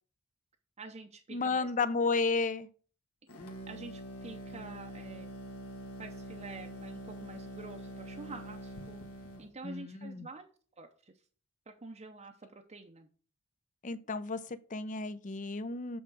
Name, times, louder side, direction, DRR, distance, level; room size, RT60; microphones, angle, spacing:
voice 1, 0.8-1.7 3.7-5.3 6.0-9.0 9.4-10.5 10.8-11.1 11.7-13.1, right 3 dB, 30° right, 0.6 m, -48 dB
voice 2, 1.3-2.7 9.6-10.3 13.8-16.0, left 4 dB, 35° left, 0.6 m, -32 dB
sound 1, 3.3-9.5, equal, 80° left, 1.6 m, -45 dB
8.0 x 3.7 x 6.1 m
head